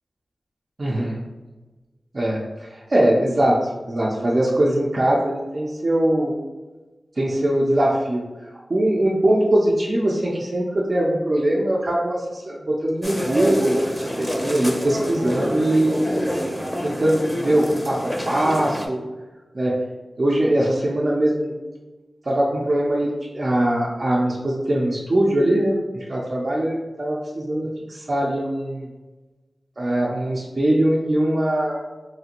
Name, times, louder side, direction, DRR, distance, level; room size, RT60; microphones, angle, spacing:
voice 1, 0.8-1.2 2.1-6.4 7.2-8.2 8.7-16.3 16.8-19.0 19.5-19.8 20.2-21.5 22.3-28.9 29.8-31.8, right 1 dB, 50° right, -5 dB, 0.4 m, -21 dB
sound 1, 13.0-18.9, equal, 10° left, 0.6 m, -27 dB
3.1 x 2.5 x 2.9 m, 1.2 s
cardioid pair, 50°, 0 cm